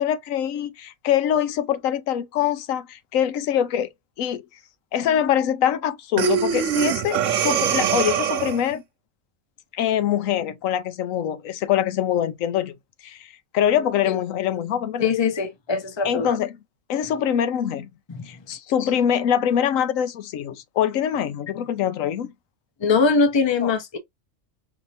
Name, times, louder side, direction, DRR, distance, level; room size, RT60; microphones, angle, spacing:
voice 1, 0.0-3.9 4.2-4.4 4.9-8.8 9.7-12.7 13.0-15.1 16.0-16.5 16.9-17.9 18.3-22.3 23.6-23.7, left 10 dB, 90° left, 1.0 m, -24 dB
Breathing, 6.2-8.7, right 9 dB, 80° right, 1.0 m, -23 dB
voice 2, 15.0-16.4 18.1-18.3 18.8-18.9 22.8-24.0, left 4 dB, 25° left, 0.6 m, -22 dB
4.9 x 2.8 x 2.5 m
omnidirectional pair, 1.3 m